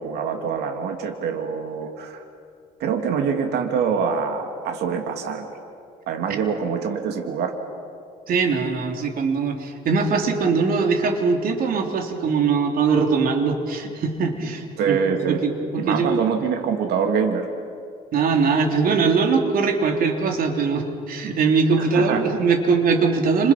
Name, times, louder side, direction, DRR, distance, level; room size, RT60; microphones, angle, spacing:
voice 1, 0.0-2.2 2.8-5.6 6.1-7.6 14.8-15.4 15.8-17.5 21.7-22.4, right 6 dB, 75° right, 4 dB, 2.7 m, -25 dB
voice 2, 8.3-16.2 18.1-23.5, right 5 dB, 60° right, 3 dB, 3.6 m, -21 dB
30.0 x 28.0 x 5.9 m, 2.4 s
cardioid pair, 110°, 17 cm